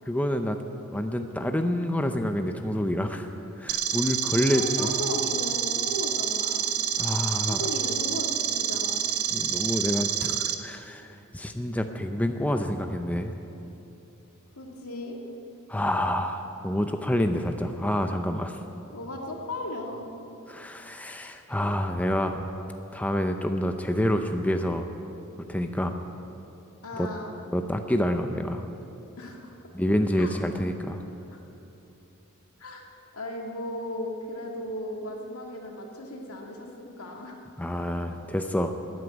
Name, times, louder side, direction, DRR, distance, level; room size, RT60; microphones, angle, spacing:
voice 1, 0.1-0.6 0.9-4.9 7.0-7.6 9.3-13.3 15.7-18.6 20.5-22.5 22.9-24.9 25.5-25.9 27.0-27.1 27.5-28.7 29.7-31.0 37.6-38.7, left 1 dB, 5° left, 6 dB, 0.5 m, -28 dB
sound 1, 3.7-10.5, right 9 dB, 70° right, 0.8 m, -28 dB
voice 2, 4.3-6.7 7.5-9.0 14.6-15.2 18.9-20.1 26.8-27.3 29.2-29.5 30.1-30.3 31.3-31.4 32.6-32.9 33.1-37.4, left 1 dB, 75° left, 1 dB, 2.1 m, -36 dB
13.0 x 9.5 x 9.7 m, 2.9 s
head